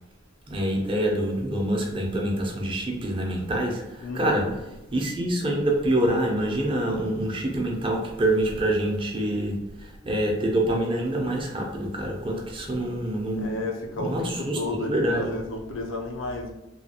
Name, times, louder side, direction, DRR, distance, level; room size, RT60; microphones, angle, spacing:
voice 1, 0.5-4.6 4.9-13.6 14.0-15.3, right 1 dB, 25° right, 0 dB, 0.6 m, -26 dB
voice 2, 4.0-4.6 13.4-16.5, left 2 dB, 85° left, 2 dB, 0.6 m, -32 dB
3.1 x 2.3 x 2.8 m, 0.99 s
head